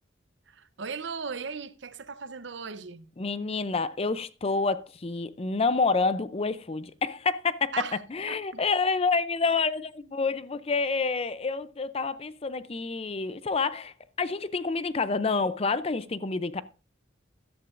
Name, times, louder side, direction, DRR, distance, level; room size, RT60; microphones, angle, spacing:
voice 1, 0.5-3.1 7.7-8.0 8.3-8.6 10.0-10.1, right 5 dB, 65° right, 0.8 m, -37 dB
voice 2, 3.2-7.7 8.1-16.6, left 4 dB, 30° left, 0.5 m, -28 dB
14.0 x 11.5 x 2.5 m
head